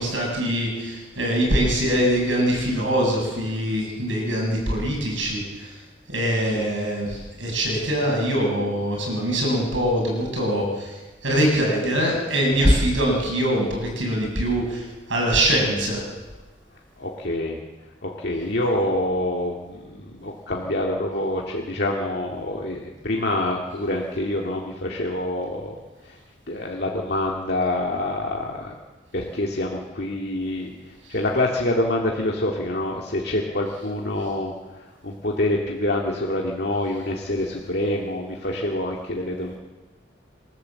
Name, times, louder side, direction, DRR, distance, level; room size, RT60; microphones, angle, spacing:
voice 1, 0.0-5.8 6.1-16.0, equal, 85° right, 0 dB, 7.9 m, -23 dB
voice 2, 17.0-17.6 18.0-25.8 26.0-26.2 26.5-28.7 29.1-30.7 31.1-39.5, left 1 dB, 60° left, -1 dB, 2.1 m, -26 dB
27.5 x 13.5 x 7.7 m, 1.2 s
head